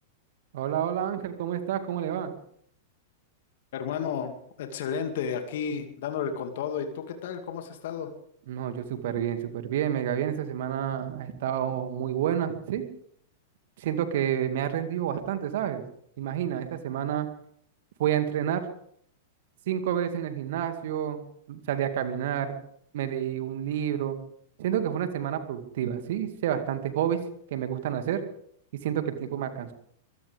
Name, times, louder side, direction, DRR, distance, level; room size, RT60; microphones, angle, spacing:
voice 1, 0.5-2.3 8.5-12.8 13.8-15.8 16.2-17.3 18.0-18.6 19.7-22.6 22.9-24.2 24.6-27.3 27.5-28.2 28.7-29.7, right 10 dB, 55° right, 8 dB, 2.3 m, -29 dB
voice 2, 3.7-4.3 4.6-8.1, left 7 dB, 55° left, 6 dB, 2.4 m, -32 dB
24.0 x 16.0 x 3.6 m, 0.65 s
figure-of-eight pair, 95°, 0 cm